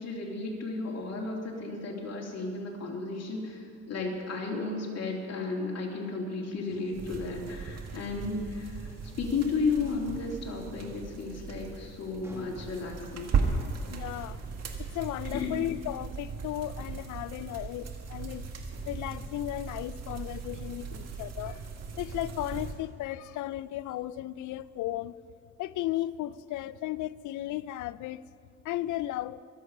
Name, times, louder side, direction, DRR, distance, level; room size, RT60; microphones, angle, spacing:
voice 1, 0.0-8.9 9.2-13.3 15.2-15.5, left 4 dB, 60° left, 3.1 m, -33 dB
sound 1, 6.6-14.9, right 1 dB, 10° right, 2.2 m, -53 dB
sound 2, 6.9-22.7, right 5 dB, 55° right, 1.9 m, -37 dB
voice 2, 13.9-14.4 14.8-18.5 18.8-21.6 22.0-25.2 25.6-28.2 28.6-29.4, left 14 dB, 80° left, 0.5 m, -35 dB
24.0 x 8.1 x 5.4 m
cardioid pair, 90°, 30 cm